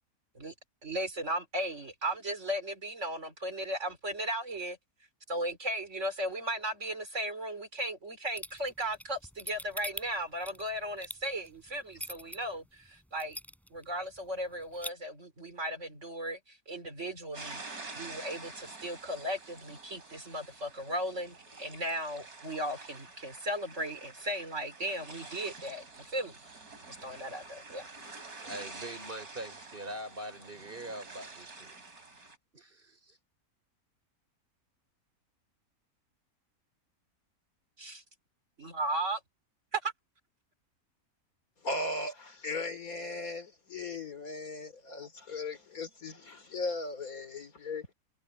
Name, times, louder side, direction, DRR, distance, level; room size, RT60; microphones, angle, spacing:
voice 1, 0.8-4.8 5.3-13.4 13.7-26.4 26.9-27.9 37.8-38.0 38.6-39.2 39.7-39.9, right 1 dB, 50° right, 4.0 m, -36 dB
sound 1, 8.4-12.4 12.8-12.9 13.2-13.8 14.2-14.3 14.5-14.9, equal, ahead, 4.3 m, -41 dB
sound 2, 17.3-32.4, right 3 dB, 80° right, 4.5 m, -48 dB
voice 2, 28.4-31.7 32.5-33.2, right 1 dB, 35° right, 4.4 m, -43 dB
voice 3, 41.6-47.9, left 2 dB, 70° left, 3.4 m, -37 dB
omnidirectional pair, 1.6 m